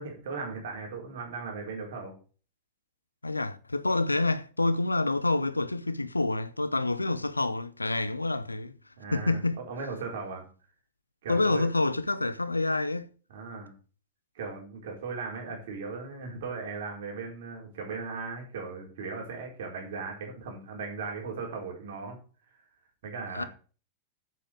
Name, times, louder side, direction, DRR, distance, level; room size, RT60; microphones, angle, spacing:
voice 1, 0.0-2.1 9.0-10.5 11.2-11.7 13.3-13.7 14.3-22.2 23.0-23.5, right 4 dB, 60° right, 4.5 m, -37 dB
voice 2, 3.2-8.7 9.1-9.6 11.3-13.1 23.3-23.4, left 2 dB, 80° left, 0.8 m, -27 dB
8.7 x 7.7 x 6.6 m
figure-of-eight pair, 90°, 0 cm